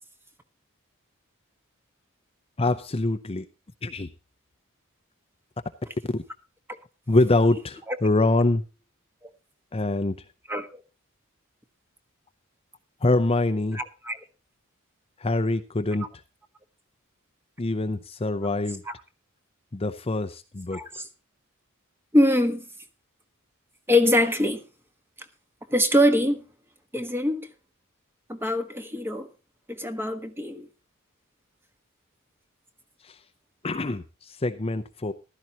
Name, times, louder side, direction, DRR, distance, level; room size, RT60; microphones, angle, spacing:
voice 1, 2.6-3.5 3.8-4.1 6.1-6.2 7.1-8.6 9.7-10.2 13.0-13.8 15.2-16.1 17.6-18.8 19.7-20.8 33.0-33.2 33.6-35.1, left 2 dB, 30° left, 0.6 m, -24 dB
voice 2, 10.5-10.8 13.7-14.2 18.9-19.0 20.7-21.0 22.1-22.6 23.9-24.6 25.7-26.4 26.9-27.5 28.3-29.3 29.7-30.7, left 1 dB, 10° right, 1.3 m, -23 dB
15.0 x 12.5 x 2.9 m
head